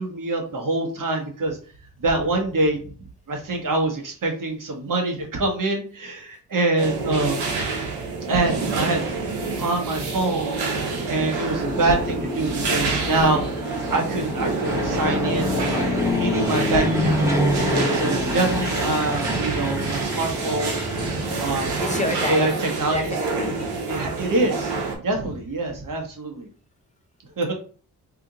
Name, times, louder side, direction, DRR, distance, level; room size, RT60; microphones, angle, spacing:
voice 1, 0.0-1.6 2.0-2.8 3.3-7.4 8.3-9.0 9.6-10.5 11.1-13.4 13.9-15.9 16.2-17.2 17.9-20.8 21.4-21.7 22.3-22.5 22.8-23.1 23.9-24.7 25.0-26.5 27.4-27.5, right 2 dB, 55° right, 2 dB, 1.1 m, -25 dB
sound 1, 6.8-25.0, right 4 dB, 80° right, 1.0 m, -27 dB
Fixed-wing aircraft airplane, 11.2-22.3, left 2 dB, 10° right, 1.2 m, -27 dB
voice 2, 18.4-18.7 20.6-21.3 21.8-22.6 22.9-23.7, left 1 dB, 20° left, 2 dB, 0.8 m, -30 dB
2.9 x 2.4 x 3.8 m, 0.41 s
cardioid pair, 60°, 38 cm